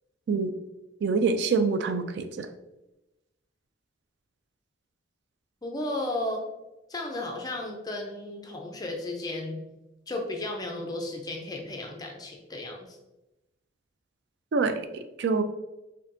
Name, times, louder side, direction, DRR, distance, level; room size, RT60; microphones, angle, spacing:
voice 1, 1.0-2.5 14.5-15.4, right 4 dB, 60° right, 9 dB, 0.3 m, -26 dB
voice 2, 5.6-6.5 6.9-9.6 10.1-13.0, left 2 dB, 20° left, 1 dB, 0.5 m, -34 dB
4.2 x 2.7 x 2.6 m, 0.99 s
head